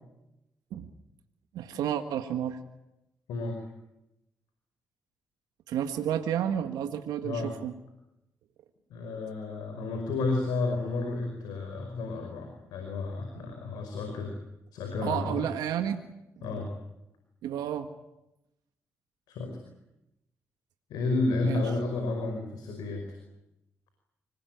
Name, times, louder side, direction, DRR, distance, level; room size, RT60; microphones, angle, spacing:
voice 1, 1.5-2.6 5.7-7.7 15.0-16.0 17.4-17.9 21.4-21.6, right 9 dB, 80° right, 7 dB, 1.7 m, -31 dB
voice 2, 8.9-14.3 14.7-15.5 16.4-16.7 19.3-19.6 20.9-23.2, left 3 dB, 85° left, 4 dB, 5.2 m, -31 dB
26.0 x 20.5 x 9.4 m, 0.90 s
supercardioid pair, 50°, 7 cm